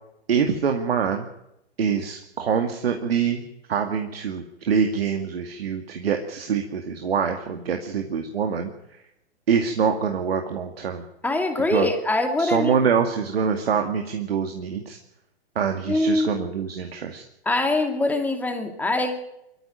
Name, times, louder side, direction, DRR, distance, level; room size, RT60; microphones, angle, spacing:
voice 1, 0.3-1.3 1.8-3.4 3.7-8.7 9.5-11.0 11.7-11.9 12.4-15.0 15.6-17.2, right 6 dB, 65° right, 4 dB, 2.3 m, -25 dB
voice 2, 11.2-12.7 15.9-16.4 17.5-19.3, left 2 dB, 5° left, 5 dB, 2.3 m, -23 dB
23.5 x 13.5 x 9.3 m, 0.84 s
figure-of-eight pair, 120°, 32 cm